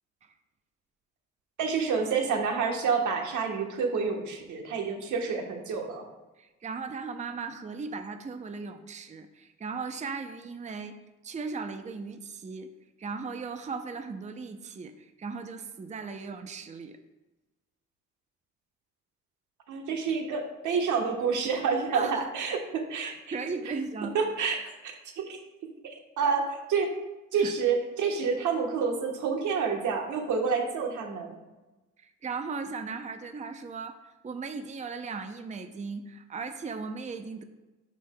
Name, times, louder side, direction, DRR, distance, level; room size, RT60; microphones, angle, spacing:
voice 1, 1.6-6.0 19.7-23.1 24.1-25.4 26.2-26.9 27.3-31.4, right 5 dB, 80° right, 3 dB, 1.2 m, -28 dB
voice 2, 6.4-10.9 11.2-12.7 13.0-17.0 21.9-22.3 23.0-24.2 27.3-27.5 32.0-34.0 34.2-37.4, right 4 dB, 25° right, 8 dB, 0.6 m, -37 dB
12.0 x 5.2 x 2.2 m, 1.1 s
cardioid pair, 80°, 29 cm